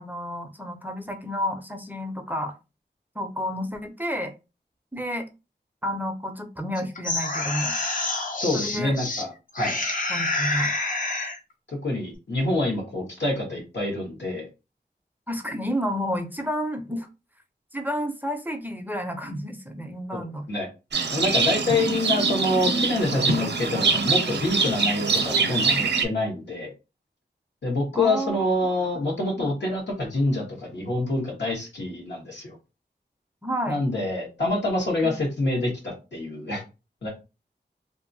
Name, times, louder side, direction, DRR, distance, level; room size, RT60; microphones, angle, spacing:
voice 1, 0.0-2.5 3.2-4.3 4.9-5.3 5.8-7.7 8.5-9.0 10.1-10.7 15.3-17.1 17.7-20.5 27.9-28.5 29.4-29.5 33.4-33.8 35.0-35.1, equal, 10° right, 5 dB, 0.5 m, -30 dB
sound 1, 6.8-9.2 9.5-11.4, left 2 dB, 50° left, 0.6 m, -27 dB
voice 2, 8.4-9.8 11.7-14.5 20.1-20.7 21.1-26.7 27.6-32.6 33.7-36.6 37.0-37.1, left 2 dB, 75° left, -1 dB, 1.2 m, -26 dB
Livestock farm animals working animals, 20.9-26.0, right 4 dB, 75° right, 0.5 m, -24 dB
2.6 x 2.5 x 2.6 m, 0.28 s
wide cardioid pair, 75°, 18 cm